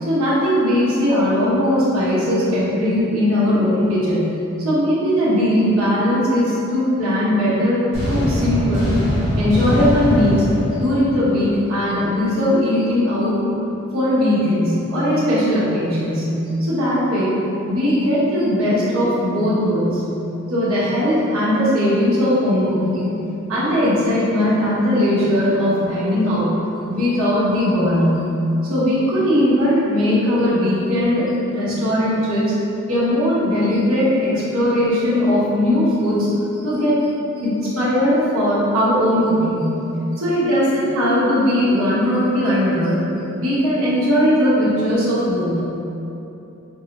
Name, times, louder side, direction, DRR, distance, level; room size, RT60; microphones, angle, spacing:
voice 1, 0.1-4.3 4.6-7.8 8.1-8.9 9.4-10.4 10.8-13.4 13.9-16.3 16.6-17.4 17.6-20.0 20.5-23.2 23.5-26.5 26.9-28.1 28.6-32.5 32.9-37.0 37.4-39.7 40.2-43.0 43.4-45.6, equal, 65° right, -10 dB, 1.0 m, -19 dB
sound 1, 7.9-11.9, equal, 55° left, 1.4 m, -22 dB
4.6 x 2.0 x 2.9 m, 2.9 s
head